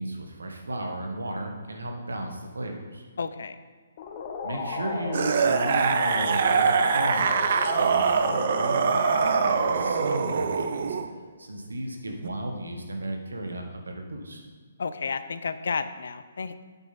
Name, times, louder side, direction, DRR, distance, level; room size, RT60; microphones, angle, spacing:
voice 1, 0.0-3.0 4.4-7.4 7.8-11.0 11.4-14.4, right 1 dB, 85° right, 3 dB, 1.4 m, -35 dB
voice 2, 3.2-3.6 14.8-16.6, left 5 dB, 70° left, 12 dB, 0.5 m, -31 dB
sound 1, 4.0-11.4, left 4 dB, 40° left, 0.9 m, -34 dB
sound 2, 5.1-11.1 12.2-12.3, right 6 dB, 55° right, 0.6 m, -24 dB
8.1 x 7.3 x 4.1 m, 1.5 s
hypercardioid pair, 140°, 0 cm